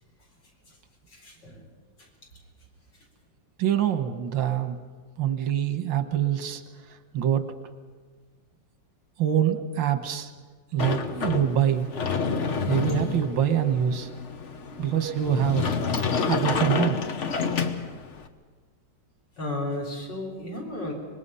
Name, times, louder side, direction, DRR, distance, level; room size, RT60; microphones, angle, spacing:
voice 1, 1.1-1.6 2.0-2.1 19.4-20.9, left 2 dB, 70° left, 0 dB, 4.6 m, -34 dB
voice 2, 3.6-4.8 5.2-6.6 7.1-7.5 9.2-10.3 10.7-11.9 12.7-14.1 14.8-15.7 16.3-17.0, right 10 dB, 90° right, 9 dB, 1.9 m, -25 dB
Sliding door, 10.8-18.3, left 5 dB, 45° left, 1.1 m, -29 dB
25.0 x 21.0 x 5.6 m, 1.5 s
omnidirectional pair, 2.0 m